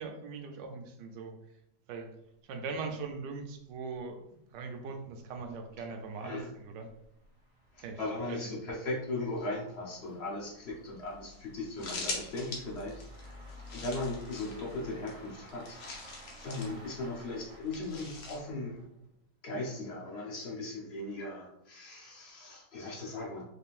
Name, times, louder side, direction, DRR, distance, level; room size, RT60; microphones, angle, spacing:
voice 1, 0.0-1.3 1.9-2.1 2.5-6.9 7.8-8.0 8.3-8.6 16.6-16.8, right 4 dB, 75° right, 5 dB, 1.2 m, -40 dB
sound 1, 3.5-3.6 4.0-4.1 4.7-19.1, left 2 dB, 45° right, 0.4 m, -53 dB
voice 2, 7.7-15.8 16.4-18.8 19.4-23.5, left 2 dB, 45° left, -3 dB, 0.9 m, -38 dB
sound 2, 11.1-11.2 11.3-11.4 11.6-16.8 17.7-18.4, left 3 dB, 80° left, 1.5 m, -42 dB
4.2 x 3.5 x 2.5 m, 0.79 s
omnidirectional pair, 2.0 m